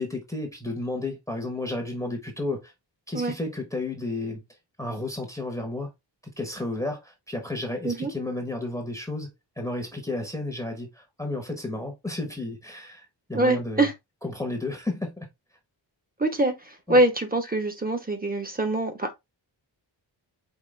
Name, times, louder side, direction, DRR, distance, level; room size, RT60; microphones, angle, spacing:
voice 1, 0.0-2.7 3.1-4.4 4.8-5.9 6.4-9.3 9.6-13.9 14.2-15.3 16.9-17.0, left 2 dB, 5° left, 1.2 m, -32 dB
voice 2, 13.3-13.9 16.2-19.1, right 2 dB, 20° right, 1.2 m, -24 dB
5.0 x 3.2 x 3.3 m
wide cardioid pair, 110°, 45 cm